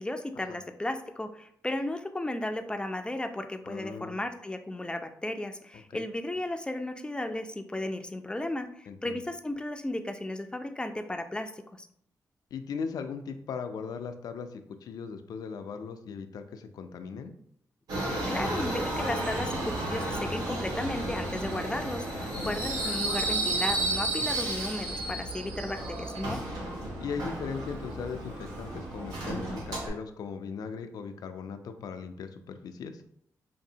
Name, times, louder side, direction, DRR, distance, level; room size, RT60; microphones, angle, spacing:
voice 1, 0.0-11.5 11.8-11.9 18.3-26.4, left 1 dB, 15° left, 7 dB, 0.4 m, -34 dB
voice 2, 3.6-4.2 5.9-6.0 8.9-9.2 12.5-17.3 22.3-22.6 24.2-24.3 27.0-33.0, left 5 dB, 80° left, 8 dB, 0.4 m, -38 dB
Subway metro underground, 17.9-29.9, right 2 dB, 90° right, 1.1 m, -32 dB
5.0 x 2.6 x 2.7 m, 0.69 s
cardioid pair, 75°, 6 cm